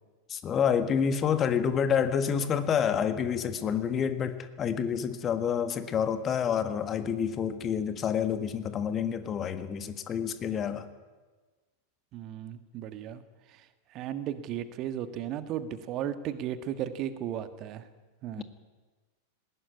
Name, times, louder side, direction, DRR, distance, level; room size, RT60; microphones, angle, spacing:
voice 1, 0.3-10.8 18.4-18.5, left 7 dB, 25° left, 10 dB, 1.7 m, -28 dB
voice 2, 12.1-13.2 13.9-17.8 18.2-18.4, right 10 dB, 35° right, 11 dB, 1.5 m, -35 dB
19.5 x 17.5 x 9.7 m, 1.3 s
figure-of-eight pair, 90°, 0 cm